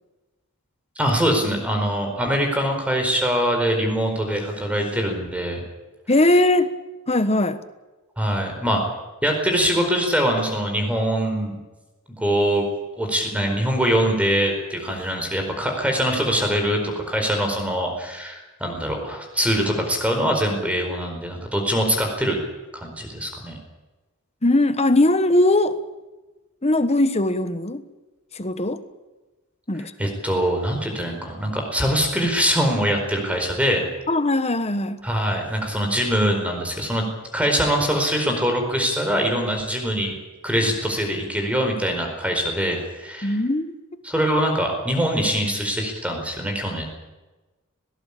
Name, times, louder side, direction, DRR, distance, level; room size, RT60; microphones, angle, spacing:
voice 1, 1.0-5.6 8.2-8.8 9.2-11.6 12.2-12.7 13.0-22.4 22.7-23.6 30.0-33.8 35.0-37.0 37.3-40.2 40.4-43.4 44.0-46.8, equal, 5° right, 3 dB, 4.6 m, -23 dB
voice 2, 6.1-6.7 7.1-7.6 24.4-25.8 26.6-27.8 28.3-28.8 29.7-30.1 34.1-35.0 43.2-43.7, left 1 dB, 30° left, 11 dB, 1.3 m, -20 dB
19.5 x 18.5 x 8.6 m, 1.1 s
head